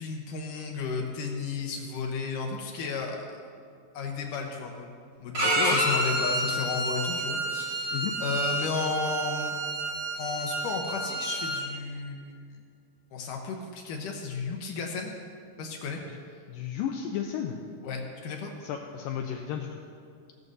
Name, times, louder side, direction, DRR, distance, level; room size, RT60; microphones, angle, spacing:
voice 1, 0.0-3.3 3.9-4.9 5.2-9.6 10.2-12.6 13.1-15.2 15.6-16.0 17.8-18.5, left 4 dB, 70° left, 2 dB, 2.1 m, -33 dB
Bowed string instrument, 5.3-11.6, right 1 dB, 60° right, 0.8 m, -29 dB
voice 2, 16.5-17.6 18.6-19.8, left 9 dB, 85° left, 3 dB, 2.0 m, -33 dB
17.5 x 14.0 x 2.7 m, 2.3 s
omnidirectional pair, 4.7 m